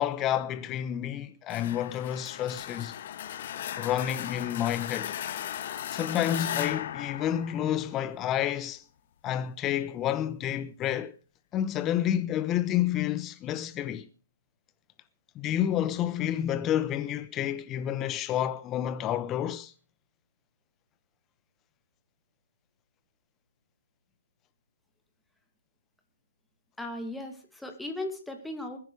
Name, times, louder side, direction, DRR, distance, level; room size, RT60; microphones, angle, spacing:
voice 1, 0.0-3.0 3.8-5.2 5.9-8.8 9.2-11.1 11.5-14.1 15.3-19.7, left 11 dB, 20° left, 1.0 m, -29 dB
sound 1, 1.5-8.2, left 10 dB, 45° left, 1.4 m, -37 dB
voice 2, 26.8-28.8, left 1 dB, 5° left, 2.5 m, -37 dB
21.0 x 9.9 x 5.0 m
figure-of-eight pair, 135°, 0 cm